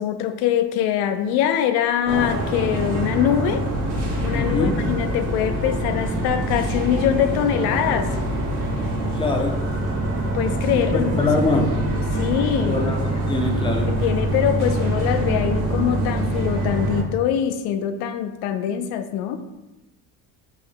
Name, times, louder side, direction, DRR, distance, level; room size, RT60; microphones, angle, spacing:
voice 1, 0.0-3.7 4.2-8.1 10.3-11.7 12.1-12.8 13.9-19.4, left 10 dB, 90° left, 9 dB, 0.5 m, -23 dB
sound 1, 2.0-17.0, right 1 dB, 80° right, 1.3 m, -24 dB
voice 2, 4.3-4.7 9.1-9.5 11.2-11.7 12.7-13.9, left 3 dB, 15° left, 2 dB, 0.4 m, -23 dB
4.7 x 2.0 x 4.4 m, 1.0 s
cardioid pair, 150°, 37 cm